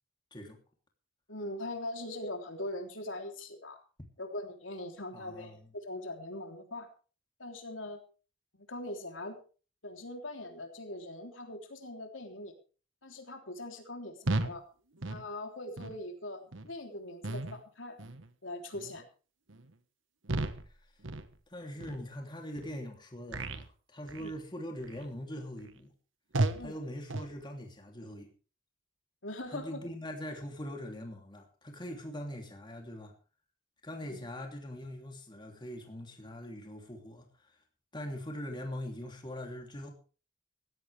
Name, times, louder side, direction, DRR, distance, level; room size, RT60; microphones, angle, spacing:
voice 1, 1.3-3.8 4.2-6.9 7.4-8.0 8.7-9.4 9.8-12.5 13.0-14.7 15.1-18.0 18.4-19.0 24.2-24.3 26.6-26.7 29.2-29.8 34.1-34.2, left 1 dB, 80° left, 3.4 m, -41 dB
voice 2, 5.1-5.7 20.6-20.8 21.5-25.9 26.6-28.3 29.5-33.1 33.8-37.6 37.9-39.9, equal, 25° left, 3.1 m, -42 dB
sound 1, 14.3-14.6 15.0-15.2 15.8-16.0 16.5-16.7 17.2-17.6 18.0-18.3 18.7-19.0 19.5-19.7 20.2-20.7 21.0-21.4 21.8-22.0 22.5-22.7 23.3-23.7 24.1-24.4 24.8-25.1 25.6-25.7 26.3-26.7 27.1-27.3, right 2 dB, 80° right, 1.4 m, -34 dB
17.5 x 15.5 x 3.5 m
head